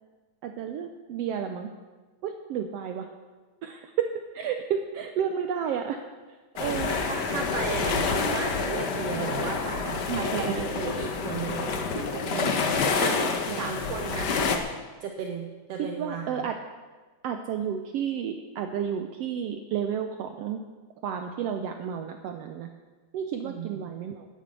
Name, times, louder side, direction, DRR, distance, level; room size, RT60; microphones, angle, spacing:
voice 1, 0.4-1.7 2.2-3.1 3.6-6.0 6.6-6.9 10.1-10.9 12.3-12.8 13.5-13.8 15.8-16.6 17.2-20.6 21.0-22.7 23.1-24.3, right 8 dB, 85° right, 6 dB, 1.4 m, -31 dB
sound 1, 6.6-14.6, left 5 dB, 70° left, 0.9 m, -28 dB
voice 2, 6.6-12.6 12.8-14.3 15.0-16.5 23.4-23.7, right 6 dB, 70° right, 4 dB, 1.7 m, -35 dB
10.5 x 10.0 x 8.2 m, 1.3 s
omnidirectional pair, 3.6 m